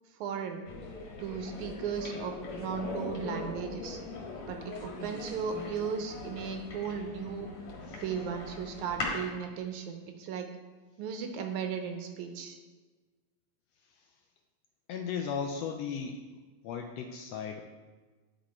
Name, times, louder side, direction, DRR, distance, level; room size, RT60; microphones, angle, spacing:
voice 1, 0.2-0.6 1.2-4.0 4.5-7.5 8.0-10.5 11.0-12.6, right 6 dB, 85° right, 5 dB, 2.2 m, -36 dB
sound 1, 0.7-9.3, left 2 dB, 55° left, 2.3 m, -40 dB
voice 2, 14.9-16.2 16.6-17.6, left 6 dB, 80° left, 4 dB, 1.5 m, -36 dB
10.5 x 5.2 x 4.3 m, 1.3 s
omnidirectional pair, 3.4 m